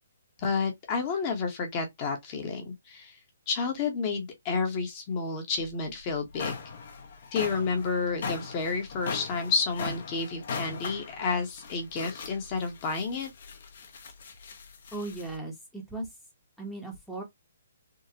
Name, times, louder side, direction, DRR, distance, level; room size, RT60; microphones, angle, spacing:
voice 1, 0.4-3.2 3.5-6.5 7.3-13.3, left 4 dB, 30° left, 0.9 m, -30 dB
sound 1, 5.6-5.7 6.1-15.4, left 5 dB, 55° left, 0.8 m, -40 dB
voice 2, 14.9-16.1 16.6-17.2, right 2 dB, ahead, 0.8 m, -37 dB
3.6 x 2.1 x 2.8 m
hypercardioid pair, 160°, 0 cm